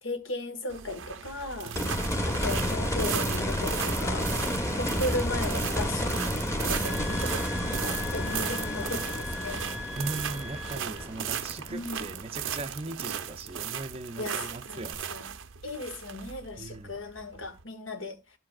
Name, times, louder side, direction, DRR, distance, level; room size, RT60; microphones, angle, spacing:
voice 1, 0.0-1.8 2.3-4.3 4.7-6.1 6.7-9.6 11.7-12.2 14.2-15.3 15.6-18.2, left 2 dB, 75° left, 1.6 m, -36 dB
sound 1, 0.7-17.6, right 8 dB, 80° right, 0.7 m, -37 dB
voice 2, 1.6-2.0 10.0-15.2 16.6-16.9, right 2 dB, 30° right, 0.5 m, -39 dB
sound 2, 1.7-12.7 14.9-15.0, equal, 15° left, 1.0 m, -31 dB
sound 3, 6.8-11.1, left 3 dB, 5° right, 0.9 m, -41 dB
11.5 x 7.5 x 2.4 m
head